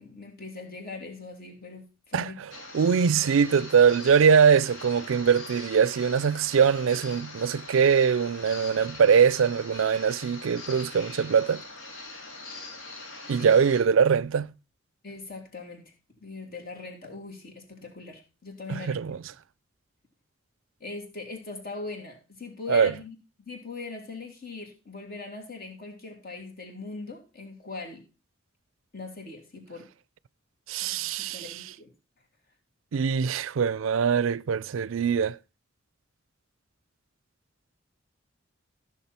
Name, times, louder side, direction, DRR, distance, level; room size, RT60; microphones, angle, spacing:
voice 1, 0.0-2.4 13.4-13.5 15.0-15.8 16.2-19.0 20.8-28.0 28.9-29.9 30.8-31.9, left 3 dB, 50° left, 3.0 m, -41 dB
sound 1, 2.5-13.8, left 3 dB, 85° left, 3.0 m, -42 dB
voice 2, 2.7-11.6 13.3-14.5 18.7-19.2 22.7-22.9 30.7-31.5 32.9-35.4, right 6 dB, 85° right, 0.4 m, -22 dB
14.0 x 6.5 x 4.3 m
head